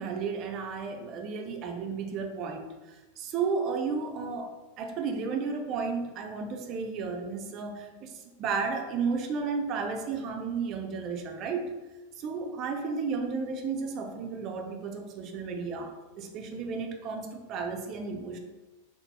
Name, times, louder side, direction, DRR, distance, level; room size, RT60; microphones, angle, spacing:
voice 1, 0.0-2.7 3.2-8.1 8.4-11.7 12.2-18.4, right 5 dB, 35° right, 3 dB, 0.5 m, -33 dB
3.9 x 2.0 x 4.0 m, 1.1 s
figure-of-eight pair, 90°, 0 cm